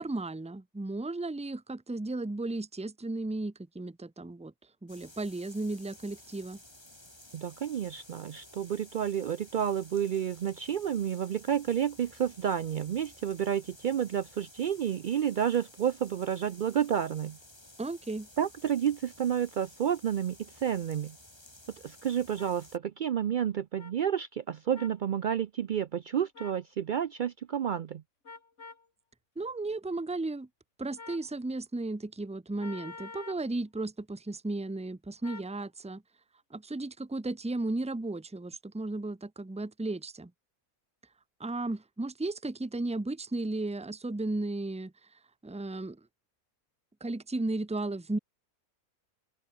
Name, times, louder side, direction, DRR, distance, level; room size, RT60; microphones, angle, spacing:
voice 1, 0.0-4.5 4.8-6.6 17.8-18.3 29.4-30.5 30.8-36.0 36.5-40.3 41.4-44.9 45.4-46.0 47.0-48.2, right 2 dB, 5° right, 0.5 m, -34 dB
sound 1, 4.9-22.8, left 1 dB, 15° left, 3.3 m, -54 dB
voice 2, 7.3-17.4 18.4-21.2 21.8-28.0, right 9 dB, 80° right, 0.4 m, -30 dB
sound 2, 22.4-22.5 23.8-23.9 24.7-25.0 26.3-26.6 28.2-28.9 31.0-31.3 32.6-33.5 35.2-35.5, left 4 dB, 55° left, 2.6 m, -46 dB
open air
omnidirectional pair, 1.5 m